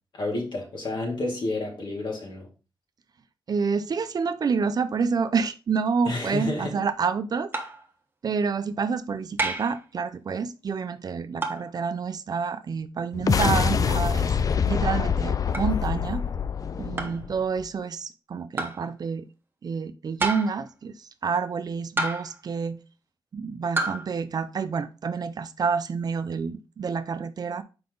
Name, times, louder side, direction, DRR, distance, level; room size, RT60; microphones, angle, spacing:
voice 1, 0.1-2.5 6.0-6.7, left 2 dB, 65° left, 2.6 m, -30 dB
voice 2, 3.5-7.5 8.2-14.3 14.7-16.2 16.8-19.2 19.6-22.8 23.3-27.6, right 5 dB, 50° right, 0.6 m, -28 dB
sound 1, 7.5-7.9 9.4-9.8 11.4-11.7 13.4-13.6 15.5-15.7 17.0-17.2 18.6-18.8 20.2-20.7 22.0-22.4 23.8-24.1, right 2 dB, 25° right, 0.9 m, -29 dB
sound 2, 13.1-17.7, left 7 dB, 45° left, 0.4 m, -25 dB
5.8 x 4.8 x 3.8 m
wide cardioid pair, 120°, 9 cm